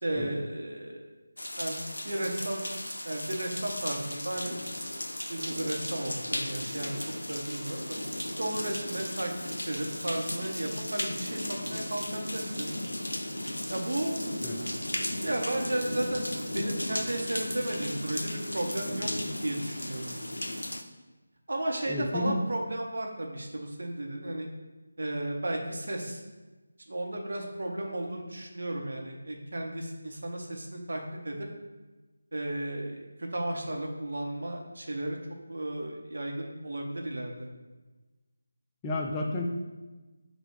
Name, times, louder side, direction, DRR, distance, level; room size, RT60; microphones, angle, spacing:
voice 1, 0.0-1.0 1.6-2.8 3.0-4.6 5.3-7.0 7.3-8.0 8.4-12.7 13.7-14.2 15.2-19.1 19.4-20.1 21.5-24.5 25.0-26.2 26.9-31.5 32.3-35.2 35.5-37.5, right 1 dB, 60° right, 1 dB, 0.8 m, -34 dB
sound 1, 1.4-20.8, left 1 dB, 75° left, 0.4 m, -35 dB
voice 2, 21.9-22.4 38.8-39.5, left 2 dB, 15° left, -1 dB, 0.3 m, -31 dB
5.6 x 2.2 x 3.6 m, 1.2 s
figure-of-eight pair, 160°, 0 cm